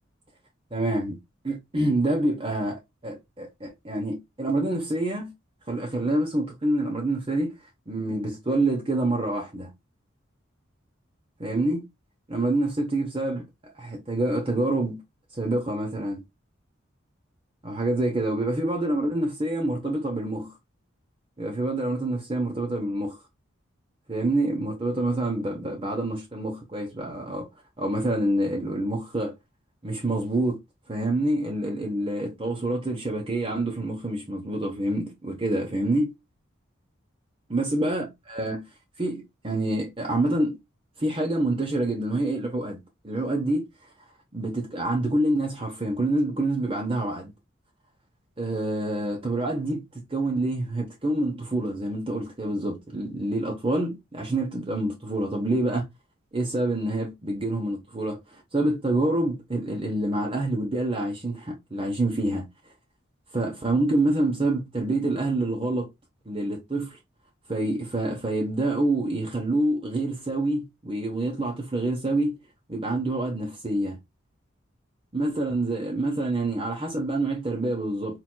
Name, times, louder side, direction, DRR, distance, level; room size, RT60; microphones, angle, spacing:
voice 1, 0.7-1.2 1.4-5.3 5.7-7.5 7.9-9.7 11.4-11.8 12.3-13.4 13.8-15.0 15.3-16.2 17.6-20.5 21.4-23.2 24.1-27.5 27.8-29.3 29.8-30.6 30.9-36.1 37.5-38.6 39.0-40.6 41.0-43.7 44.3-47.3 48.4-49.8 50.1-55.9 56.3-58.2 58.5-62.5 63.3-65.9 66.3-67.0 67.5-72.4 72.7-74.0 75.1-78.2, right 1 dB, 25° right, 0.9 m, -27 dB
4.6 x 3.3 x 2.2 m
head